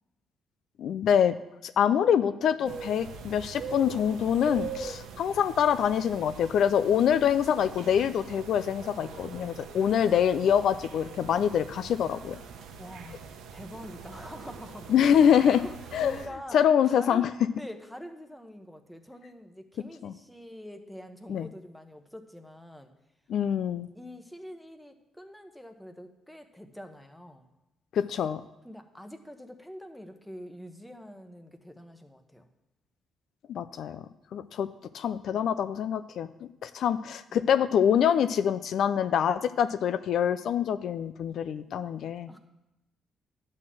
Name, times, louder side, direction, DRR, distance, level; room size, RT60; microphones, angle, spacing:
voice 1, 0.8-1.3 1.6-12.4 14.9-15.6 15.9-16.2 16.5-17.3 20.0-20.1 21.3-21.5 23.3-23.9 27.9-28.4 33.5-34.0 34.3-34.7 34.9-36.3 36.6-42.3, left 8 dB, 70° left, 12 dB, 0.4 m, -25 dB
sound 1, 2.6-16.3, right 5 dB, 85° right, 1.0 m, -42 dB
voice 2, 12.8-13.2 13.5-14.9 15.1-16.6 16.8-22.9 23.9-27.5 28.6-32.5 35.3-35.4 37.3-37.5 42.3-42.4, equal, 5° left, 6 dB, 1.0 m, -45 dB
10.5 x 4.2 x 7.6 m, 0.92 s
cardioid pair, 90°, 0 cm